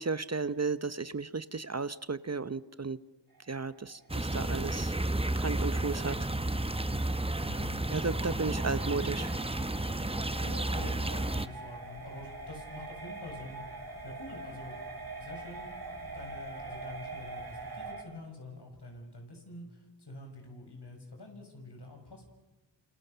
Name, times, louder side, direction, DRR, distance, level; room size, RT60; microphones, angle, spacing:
voice 1, 0.0-3.0 3.5-4.9 5.4-6.2 7.9-9.3, right 4 dB, 35° right, 14 dB, 0.8 m, -34 dB
sound 1, 3.3-18.0, right 3 dB, 50° right, 4.0 m, -45 dB
sound 2, 4.1-11.5, right 1 dB, 15° right, 1.0 m, -32 dB
sound 3, 5.5-17.9, left 3 dB, 80° left, 4.1 m, -54 dB
voice 2, 7.4-8.7 10.4-13.7 14.0-14.8 15.2-22.3, left 2 dB, 65° left, 2 dB, 7.2 m, -47 dB
29.5 x 27.5 x 6.8 m, 1.2 s
wide cardioid pair, 55°, 44 cm